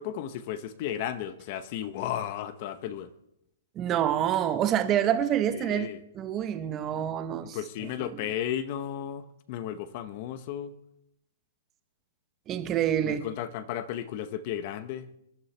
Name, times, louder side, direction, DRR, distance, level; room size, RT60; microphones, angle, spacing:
voice 1, 0.0-3.1 5.5-6.0 7.4-10.8 13.0-15.1, left 10 dB, 30° left, 0.8 m, -34 dB
voice 2, 3.8-5.9 6.1-7.6 12.5-13.2, right 10 dB, 15° right, 0.8 m, -27 dB
26.5 x 11.5 x 3.3 m
hypercardioid pair, 170°, 0 cm